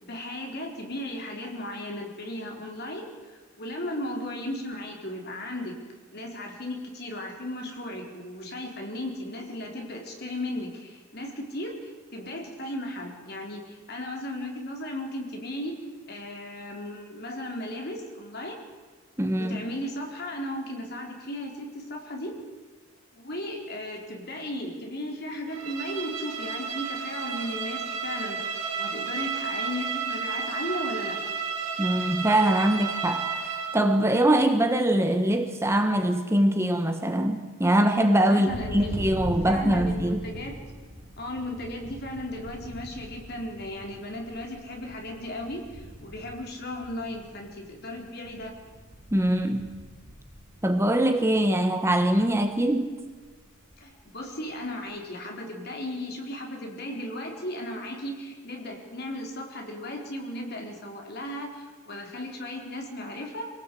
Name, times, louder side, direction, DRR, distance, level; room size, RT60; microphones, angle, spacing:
voice 1, 0.0-5.8 6.1-15.8 16.1-18.6 19.3-22.4 23.1-31.3 38.2-39.1 39.4-40.6 41.2-48.6 53.8-63.5, left 1 dB, 50° left, 2 dB, 4.1 m, -36 dB
voice 2, 19.2-19.6 31.8-40.2 49.1-49.7 50.6-53.0, right 1 dB, 15° right, 6 dB, 1.3 m, -23 dB
Bowed string instrument, 25.5-33.9, right 6 dB, 85° right, 3.9 m, -32 dB
Thunder, 38.5-51.4 51.7-52.3 52.6-54.1, equal, 45° right, 3.8 m, -42 dB
24.5 x 18.0 x 8.5 m, 1.4 s
head